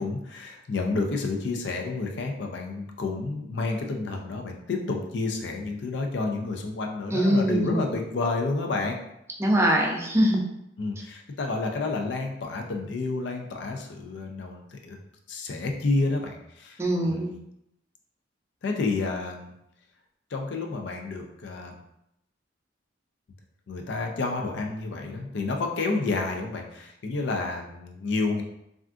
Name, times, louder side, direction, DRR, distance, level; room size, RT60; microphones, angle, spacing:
voice 1, 0.0-9.0 10.8-15.0 15.3-17.2 18.6-19.5 20.3-21.8 23.7-28.4, left 3 dB, 65° left, 2 dB, 0.4 m, -30 dB
voice 2, 7.1-7.8 9.4-10.4 16.8-17.3, equal, 15° right, -1 dB, 0.4 m, -22 dB
3.4 x 2.4 x 2.4 m, 0.80 s
head